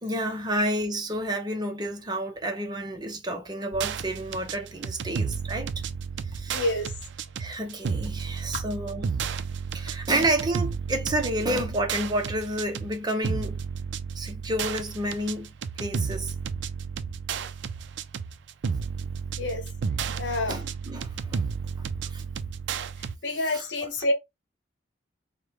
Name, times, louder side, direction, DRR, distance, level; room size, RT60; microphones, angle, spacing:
voice 1, 0.0-5.7 6.3-6.6 7.4-9.1 9.7-13.6 14.2-15.5 15.8-16.3 20.5-21.4 22.0-22.2 23.5-23.7, right 1 dB, 20° right, 0.6 m, -30 dB
sound 1, 3.7-23.2, right 6 dB, 65° right, 0.4 m, -32 dB
voice 2, 6.5-6.9 19.4-19.6 20.2-20.6 23.2-24.1, left 2 dB, 60° left, 0.9 m, -27 dB
4.7 x 2.2 x 3.4 m
head